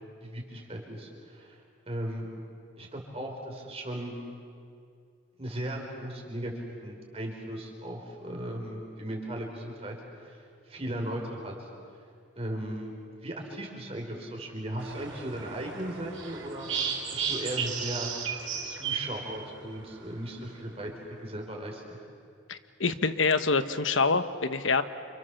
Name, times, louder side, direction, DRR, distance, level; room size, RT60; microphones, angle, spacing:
voice 1, 0.2-1.6 1.9-2.3 2.8-4.1 5.4-6.5 6.8-10.0 10.2-10.4 10.7-11.7 12.4-12.9 13.2-16.7 17.1-18.1 18.6-20.9 21.2-22.0, right 1 dB, 30° right, 1 dB, 4.5 m, -37 dB
sound 1, 14.8-19.8, right 6 dB, 85° right, 4.5 m, -34 dB
voice 2, 22.5-24.8, left 4 dB, 80° left, 11 dB, 1.2 m, -26 dB
30.0 x 27.5 x 7.1 m, 2.3 s
head